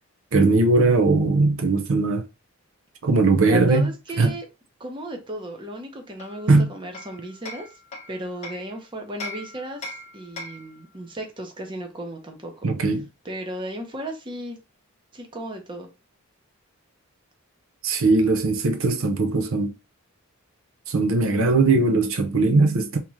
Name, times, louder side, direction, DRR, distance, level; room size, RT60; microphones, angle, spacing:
voice 1, 0.3-2.2 3.0-3.9 4.2-4.3 6.5-6.7 12.6-13.0 17.8-19.7 20.9-23.0, right 3 dB, 65° right, 0.6 m, -19 dB
voice 2, 3.5-4.5 4.8-7.7 8.1-12.6 13.2-14.6 15.1-15.9, right 1 dB, 20° right, 0.8 m, -35 dB
Hammer, 6.2-8.7 9.2-10.8, left 2 dB, 30° left, 0.9 m, -39 dB
3.5 x 2.9 x 3.1 m
head